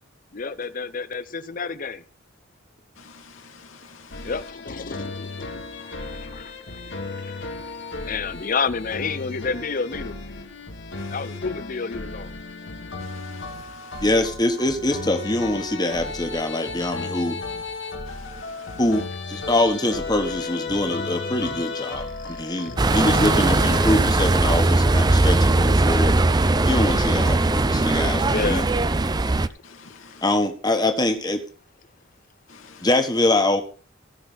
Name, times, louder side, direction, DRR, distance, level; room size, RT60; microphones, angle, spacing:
voice 1, 0.3-2.0 4.2-7.6 8.0-10.2 11.1-12.4 22.2-23.0 28.3-28.7 29.5-29.6, left 5 dB, 40° left, 0.7 m, -30 dB
voice 2, 2.9-4.5 11.0-11.4 13.0-14.3 18.0-19.0 29.6-30.4 32.5-33.1, left 5 dB, 85° left, 2.5 m, -48 dB
sound 1, 4.1-24.0, left 3 dB, 60° left, 1.9 m, -34 dB
voice 3, 14.0-17.4 18.8-26.1 26.7-28.6 30.2-31.4 32.8-33.6, left 1 dB, 20° left, 1.4 m, -24 dB
sound 2, 22.8-29.5, right 2 dB, 20° right, 0.5 m, -19 dB
17.0 x 5.9 x 5.7 m
head